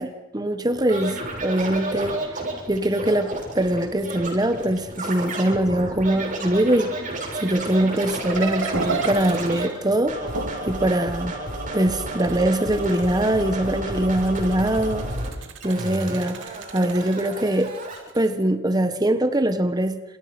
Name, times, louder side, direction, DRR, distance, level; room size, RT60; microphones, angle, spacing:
voice 1, 0.0-2.2 2.7-6.9 7.4-10.2 10.6-11.4 11.7-15.1 15.6-17.7 18.1-20.0, right 1 dB, 20° right, 9 dB, 1.4 m, -22 dB
Scratching (performance technique), 0.9-9.7 10.1-15.3 15.6-18.0, right 2 dB, 40° right, 7.5 m, -32 dB
sound 1, 8.0-10.7 12.0-13.5 14.1-18.3, right 5 dB, 65° right, 2.9 m, -35 dB
sound 2, 8.3-11.0, right 2 dB, 85° right, 2.0 m, -33 dB
28.5 x 28.0 x 6.1 m, 1.1 s
head